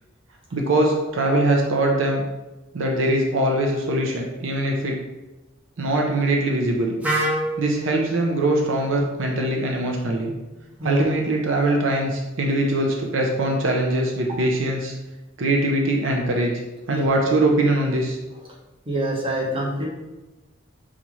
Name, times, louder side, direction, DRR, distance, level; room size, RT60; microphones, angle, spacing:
voice 1, 0.5-2.2 2.7-5.0 5.8-6.9 7.6-10.3 10.8-14.9 15.4-16.5 16.9-18.2, right 1 dB, 75° right, 1 dB, 0.6 m, -22 dB
Wind instrument woodwind instrument, 7.0-10.9, right 1 dB, 5° right, 0.5 m, -31 dB
voice 2, 18.9-19.8, right 1 dB, 25° right, -4 dB, 0.9 m, -26 dB
5.4 x 2.4 x 3.0 m, 1.1 s
head